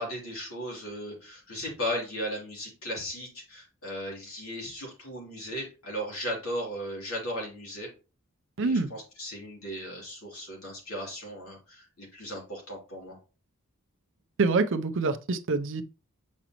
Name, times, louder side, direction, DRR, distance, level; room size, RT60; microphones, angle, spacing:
voice 1, 0.0-7.9 8.6-13.2, equal, 65° left, 3.0 m, -36 dB
voice 2, 8.6-8.9 14.4-15.8, right 3 dB, 60° right, 0.6 m, -26 dB
7.2 x 5.1 x 3.0 m
head